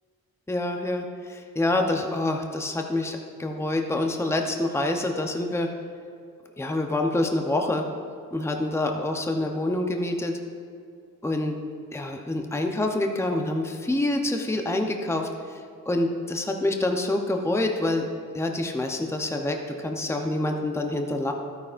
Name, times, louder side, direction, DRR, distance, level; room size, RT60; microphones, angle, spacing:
voice 1, 0.5-5.7 6.6-7.8 8.3-10.3 11.2-11.6 11.9-15.3 15.9-18.1 18.3-21.3, left 2 dB, 5° left, 3 dB, 0.8 m, -26 dB
12.5 x 9.6 x 2.6 m, 2.3 s
cardioid pair, 70°, 37 cm